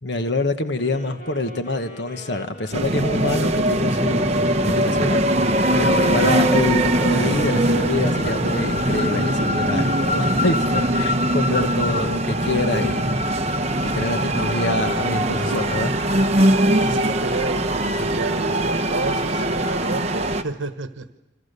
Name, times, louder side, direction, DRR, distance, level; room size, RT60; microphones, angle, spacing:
voice 1, 0.0-5.2 5.7-13.1 13.8-15.9, left 2 dB, 65° left, 7 dB, 1.3 m, -26 dB
Wind instrument woodwind instrument, 0.7-7.9, equal, 45° left, 6.4 m, -43 dB
sound 1, 2.7-20.4, right 1 dB, 30° right, 1.1 m, -21 dB
voice 2, 16.7-21.2, right 3 dB, 85° right, 9 dB, 1.2 m, -30 dB
29.5 x 26.0 x 6.8 m, 1.1 s
head